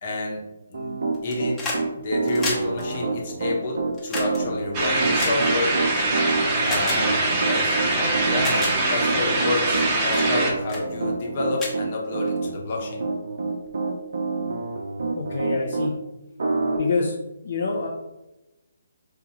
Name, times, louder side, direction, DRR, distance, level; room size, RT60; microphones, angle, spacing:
voice 1, 0.0-1.6 2.0-5.8 6.6-7.2 7.4-13.0, left 2 dB, 40° left, -1 dB, 1.0 m, -29 dB
Piano, 0.7-15.9 16.4-16.8, right 3 dB, 60° right, 0.5 m, -27 dB
sound 1, 1.1-1.8 2.1-6.0 6.6-7.0 7.8-7.9 8.3-8.7 9.3-9.6 10.1-10.4 10.7-10.9 11.2-11.3 11.5-12.5 13.6-13.7, left 2 dB, 15° left, 0.9 m, -32 dB
sound 2, 4.7-10.5, right 2 dB, 25° right, 0.7 m, -23 dB
voice 2, 15.2-16.0 16.8-17.9, left 3 dB, 60° left, -2 dB, 0.5 m, -27 dB
4.8 x 2.3 x 2.9 m, 0.99 s
figure-of-eight pair, 145°, 0 cm